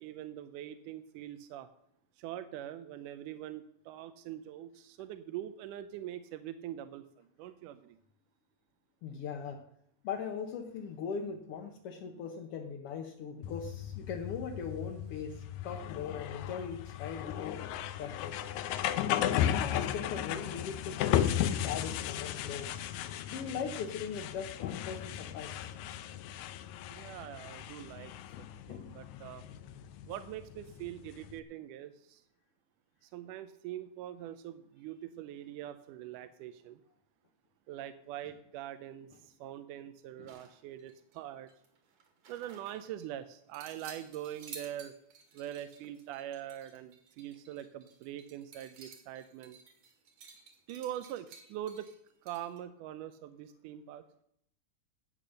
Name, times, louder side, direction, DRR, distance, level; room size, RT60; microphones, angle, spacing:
voice 1, 0.0-1.7 2.2-8.0 26.9-29.4 30.1-32.2 33.0-36.8 37.7-41.5 42.3-44.9 45.3-49.6 50.7-51.9 52.2-54.0, right 12 dB, 85° right, 11 dB, 2.2 m, -43 dB
voice 2, 9.0-9.6 10.0-17.6 17.9-18.4 19.1-22.9 23.2-25.7 40.2-40.3, left 6 dB, 65° left, 2 dB, 1.6 m, -40 dB
sound 1, 13.4-31.4, left 11 dB, 80° left, 2.0 m, -35 dB
sound 2, 40.3-41.2 41.5-43.1 43.5-52.6, right 5 dB, 65° right, 3.3 m, -54 dB
13.5 x 8.6 x 6.5 m, 0.73 s
omnidirectional pair, 3.6 m